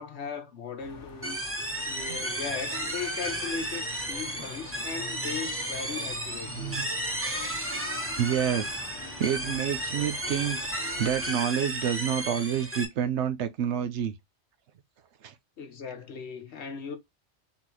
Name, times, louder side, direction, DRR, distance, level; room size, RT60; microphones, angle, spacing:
voice 1, 0.0-1.5 1.9-6.8 15.6-17.0, left 5 dB, 65° left, 1.2 m, -38 dB
sound 1, 0.8-11.3, left 5 dB, 90° left, 1.3 m, -46 dB
sound 2, 1.2-12.9, right 1 dB, 15° right, 0.8 m, -33 dB
voice 2, 6.5-6.9 7.7-7.9 8.2-10.6 11.0-14.1 15.2-15.3, right 9 dB, 70° right, 0.9 m, -29 dB
4.1 x 3.6 x 2.9 m
omnidirectional pair, 1.2 m